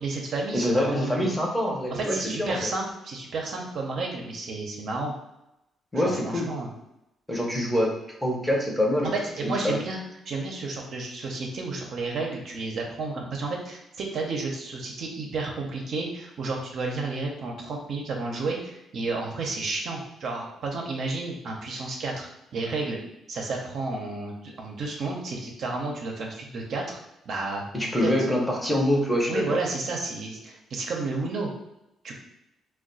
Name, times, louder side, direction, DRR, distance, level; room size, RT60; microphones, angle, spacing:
voice 1, 0.0-1.4 1.9-5.1 5.9-6.7 9.0-10.0 10.3-23.0 23.3-27.0 27.3-27.6 28.0-28.1 29.3-31.5 32.0-32.1, right 3 dB, 65° right, 0 dB, 0.6 m, -31 dB
voice 2, 0.5-2.7 5.9-6.5 7.3-7.9 8.2-9.8 27.7-29.6, left 1 dB, 10° left, -1 dB, 0.7 m, -25 dB
2.3 x 2.2 x 3.9 m, 0.88 s
cardioid pair, 90°, 0 cm